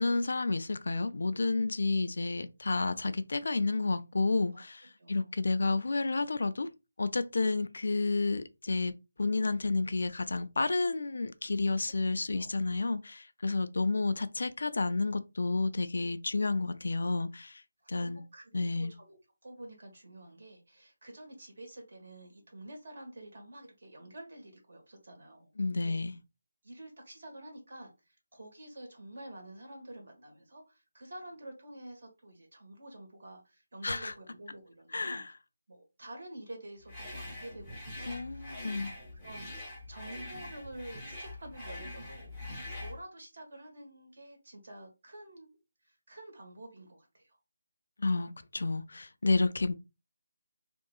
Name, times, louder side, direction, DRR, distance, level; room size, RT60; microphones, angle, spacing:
voice 1, 0.0-6.7 7.0-8.9 9.2-17.6 17.9-18.2 18.5-18.9 25.6-26.1 33.8-34.1 34.9-35.3 38.1-38.9 48.0-49.7, left 3 dB, 60° left, 0.3 m, -30 dB
voice 2, 5.0-5.6 12.3-12.6 17.9-18.4 18.7-25.5 25.8-26.0 26.6-35.2 35.7-38.9 39.2-39.5 39.9-45.5 45.8-47.4, right 1 dB, 55° right, 1.4 m, -49 dB
sound 1, 36.9-43.0, left 1 dB, ahead, 0.7 m, -43 dB
3.7 x 2.4 x 2.3 m
figure-of-eight pair, 175°, 0 cm